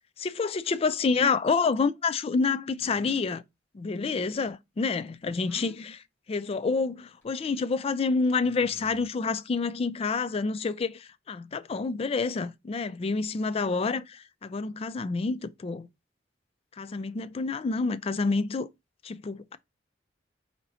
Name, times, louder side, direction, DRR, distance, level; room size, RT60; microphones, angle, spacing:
voice 1, 0.2-3.4 3.7-6.0 6.3-15.9 16.8-18.7 19.0-19.6, left 4 dB, 30° left, 0.3 m, -28 dB
sound 1, 2.8-3.3 5.4-5.8 7.2-7.3 8.4-9.1, left 1 dB, 10° left, 2.2 m, -49 dB
4.3 x 2.8 x 4.0 m
head